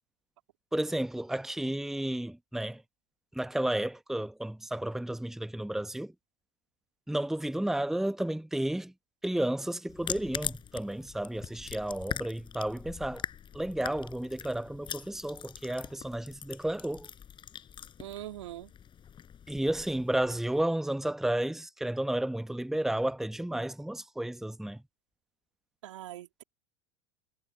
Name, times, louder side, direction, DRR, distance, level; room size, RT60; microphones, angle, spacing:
voice 1, 0.7-2.8 3.3-6.1 7.1-8.9 9.2-13.2 13.5-17.1 19.5-24.8, right 1 dB, ahead, 1.1 m, -32 dB
sound 1, 9.9-20.6, left 8 dB, 30° left, 6.4 m, -42 dB
voice 2, 18.0-18.7 25.8-26.4, right 14 dB, 75° right, 2.6 m, -42 dB
hypercardioid pair, 95°, 15 cm